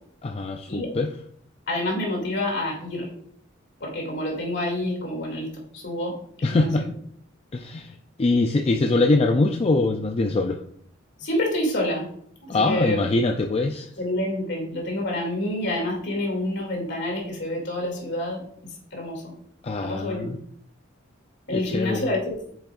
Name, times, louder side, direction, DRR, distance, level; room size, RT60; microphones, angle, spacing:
voice 1, 0.2-1.1 6.4-6.9 7.5-10.6 12.5-13.9 19.6-20.4 21.5-22.1, left 2 dB, 30° left, 4 dB, 0.4 m, -23 dB
voice 2, 1.7-3.1 3.8-6.9 11.2-12.1 12.4-13.0 14.0-18.4 18.9-19.2 19.8-20.4 21.5-22.4, left 1 dB, 60° left, 0 dB, 2.5 m, -28 dB
8.2 x 6.4 x 2.4 m, 0.63 s
head